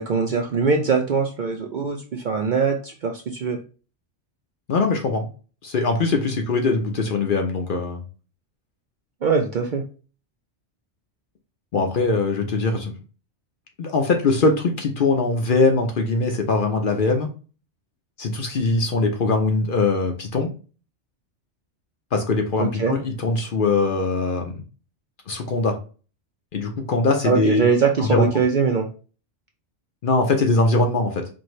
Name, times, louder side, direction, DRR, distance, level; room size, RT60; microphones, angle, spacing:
voice 1, 0.0-3.6 9.2-9.8 22.6-22.9 27.2-28.9, right 5 dB, 55° right, 2 dB, 0.5 m, -22 dB
voice 2, 4.7-5.3 5.6-8.0 11.7-12.9 13.8-17.3 18.2-20.5 22.1-24.6 25.3-25.8 26.5-27.6 28.0-28.4 30.0-31.3, left 3 dB, 55° left, 3 dB, 0.7 m, -21 dB
4.4 x 2.6 x 3.1 m, 0.36 s
omnidirectional pair, 1.2 m